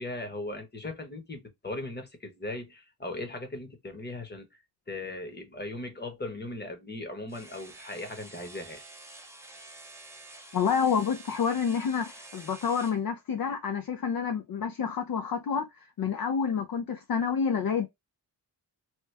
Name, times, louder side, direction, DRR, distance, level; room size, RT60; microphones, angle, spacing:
voice 1, 0.0-4.6 4.9-8.8, left 2 dB, 25° left, 1.0 m, -38 dB
sound 1, 7.3-13.0, right 2 dB, 5° right, 0.6 m, -48 dB
voice 2, 10.5-15.6 16.0-17.9, left 6 dB, 55° left, 0.5 m, -28 dB
2.9 x 2.2 x 3.2 m
wide cardioid pair, 75°, 44 cm